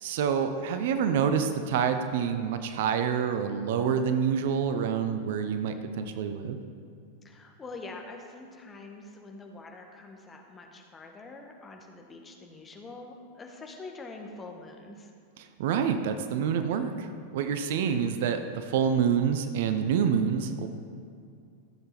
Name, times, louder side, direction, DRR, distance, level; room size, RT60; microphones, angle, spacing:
voice 1, 0.0-6.6 15.6-17.1 17.3-20.7, right 7 dB, 55° right, 8 dB, 0.7 m, -27 dB
voice 2, 7.2-15.1, left 3 dB, 20° left, 2 dB, 1.3 m, -45 dB
14.0 x 7.9 x 4.0 m, 2.4 s
figure-of-eight pair, 90°, 0 cm